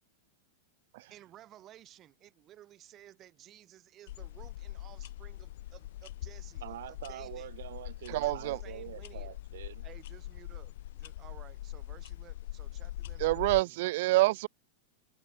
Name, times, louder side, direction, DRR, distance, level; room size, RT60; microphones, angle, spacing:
voice 1, 1.1-7.5 8.1-9.3 9.8-13.8, right 13 dB, 25° right, 2.0 m, -55 dB
sound 1, 4.1-13.6, left 15 dB, 60° left, 1.6 m, -43 dB
voice 2, 6.6-9.8, right 13 dB, 70° right, 1.0 m, -45 dB
voice 3, 8.1-8.6 13.2-14.5, right 19 dB, 50° right, 0.4 m, -27 dB
supercardioid pair, 165°, 0 cm